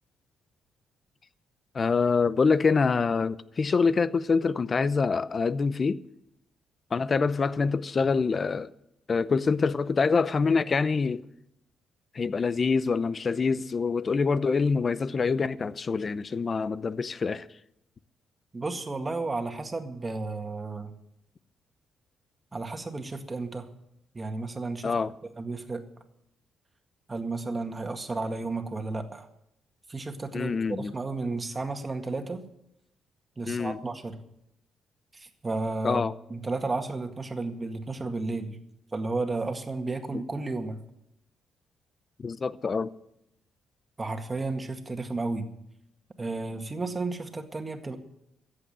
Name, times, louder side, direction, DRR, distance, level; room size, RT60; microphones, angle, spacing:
voice 1, 1.7-6.0 6.9-8.7 9.1-11.2 12.1-17.5 24.8-25.1 30.3-30.9 33.5-33.8 35.8-36.1 42.2-42.9, left 4 dB, 35° left, 0.7 m, -25 dB
voice 2, 18.5-20.9 22.5-23.7 24.1-24.9 25.2-25.8 27.1-29.3 29.9-32.4 33.4-34.2 35.1-38.6 38.9-40.8 44.0-45.5 46.2-48.0, right 3 dB, 25° right, 1.9 m, -33 dB
14.5 x 8.7 x 9.0 m
cardioid pair, 90°, 0 cm